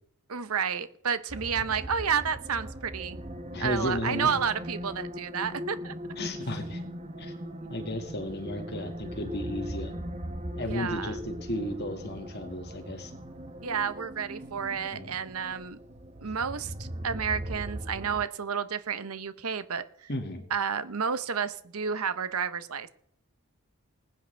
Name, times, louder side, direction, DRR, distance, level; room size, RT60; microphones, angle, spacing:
voice 1, 0.3-3.2 3.5-5.9 10.6-11.2 13.6-15.8 16.2-20.1 20.5-22.9, right 6 dB, 80° right, 13 dB, 0.8 m, -31 dB
sound 1, 1.3-18.3, equal, 30° right, 0.8 m, -39 dB
voice 2, 3.5-4.3 6.2-6.8 7.2-7.3 7.7-9.9 10.6-13.1 14.9-15.1 20.1-20.4, left 1 dB, 45° left, 5 dB, 1.9 m, -34 dB
20.5 x 9.5 x 3.4 m, 0.68 s
head